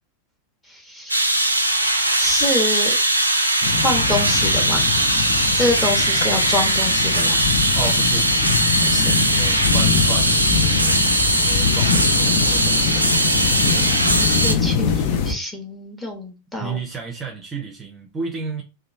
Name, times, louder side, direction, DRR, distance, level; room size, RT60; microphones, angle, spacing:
voice 1, 0.7-1.3 2.2-2.9 3.8-4.9 5.6-7.4 8.8-9.3 12.8-13.0 13.5-16.8, left 1 dB, 10° left, 0.9 m, -27 dB
sound 1, 1.1-14.5, right 1 dB, 85° right, 0.4 m, -19 dB
sound 2, 3.6-15.3, left 7 dB, 45° left, 0.5 m, -23 dB
voice 2, 7.8-8.6 9.3-11.0 11.4-13.0 14.9-15.2 16.6-18.6, right 4 dB, 20° right, 0.6 m, -33 dB
2.8 x 2.2 x 2.5 m
figure-of-eight pair, 90°, 0 cm